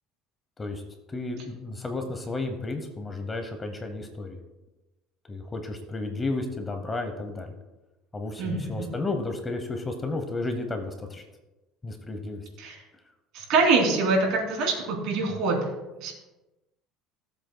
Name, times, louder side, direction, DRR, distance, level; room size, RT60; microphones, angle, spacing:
voice 1, 1.1-4.4 5.3-7.5 8.1-11.2 11.8-12.4, left 2 dB, 15° left, 5 dB, 0.9 m, -32 dB
voice 2, 8.4-8.9 12.6-12.8 13.3-15.7 16.0-16.1, right 3 dB, 60° right, 0 dB, 3.0 m, -24 dB
16.5 x 7.8 x 2.2 m, 1.1 s
cardioid pair, 150°, 0 cm